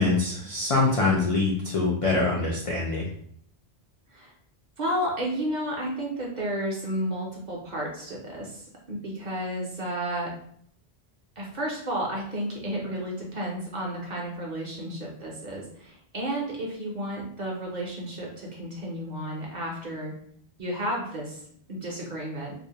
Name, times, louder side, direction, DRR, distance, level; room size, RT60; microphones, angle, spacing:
voice 1, 0.0-3.1, left 3 dB, 55° left, -4 dB, 0.3 m, -24 dB
voice 2, 4.8-10.3 11.4-20.1 20.6-21.4 21.7-22.5, right 1 dB, 55° right, -2 dB, 0.6 m, -32 dB
2.4 x 2.0 x 2.8 m, 0.64 s
omnidirectional pair, 1.1 m